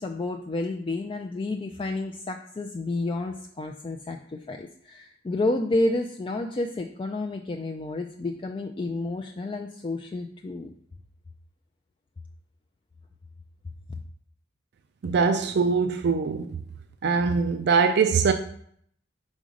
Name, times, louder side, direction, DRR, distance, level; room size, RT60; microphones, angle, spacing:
voice 1, 0.0-10.7, left 2 dB, 25° left, 3 dB, 0.3 m, -30 dB
voice 2, 15.0-16.6 17.0-18.3, right 5 dB, 60° right, 8 dB, 0.4 m, -22 dB
5.2 x 3.8 x 5.0 m, 0.64 s
head